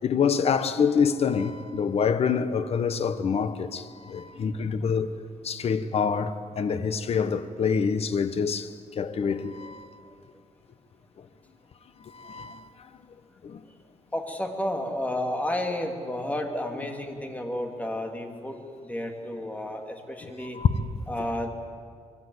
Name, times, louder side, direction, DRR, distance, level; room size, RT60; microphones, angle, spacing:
voice 1, 0.0-5.1 5.4-8.7 9.0-9.9 12.0-12.7 13.4-13.6 20.5-20.8, left 6 dB, 55° left, 1.3 m, -26 dB
voice 2, 4.3-4.7 9.6-9.7 10.1-10.2 14.1-20.6 21.1-21.5, left 1 dB, 10° left, 2.7 m, -32 dB
25.0 x 23.5 x 8.1 m
wide cardioid pair, 130°, 12 cm